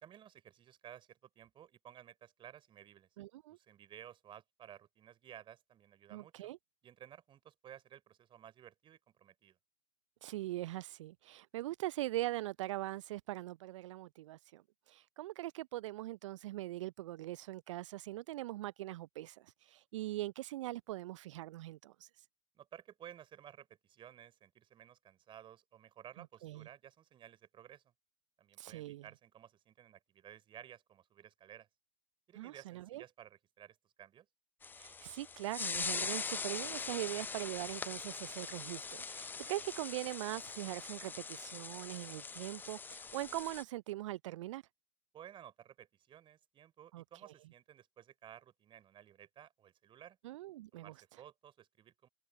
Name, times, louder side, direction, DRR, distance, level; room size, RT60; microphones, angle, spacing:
voice 1, 0.0-3.1 3.5-6.5 6.8-9.6 22.5-27.8 28.4-31.7 32.3-34.3 45.1-50.2 50.7-52.1, right 10 dB, 25° right, 4.5 m, -56 dB
voice 2, 3.2-3.6 6.1-6.6 10.2-22.3 26.2-26.7 28.6-29.1 32.3-33.0 34.8-44.6 46.9-47.3 50.2-51.2, right 16 dB, 55° right, 0.6 m, -42 dB
sound 1, 34.6-43.6, left 5 dB, 10° left, 0.6 m, -42 dB
figure-of-eight pair, 100°, 19 cm